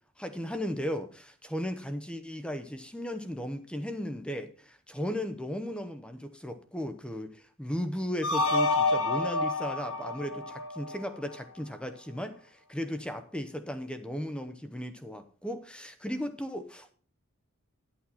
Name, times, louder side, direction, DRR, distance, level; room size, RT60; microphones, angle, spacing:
voice 1, 0.2-16.9, equal, 5° left, 0.9 m, -36 dB
sound 1, 8.2-11.3, left 2 dB, 70° left, 1.4 m, -28 dB
11.0 x 8.8 x 4.2 m
head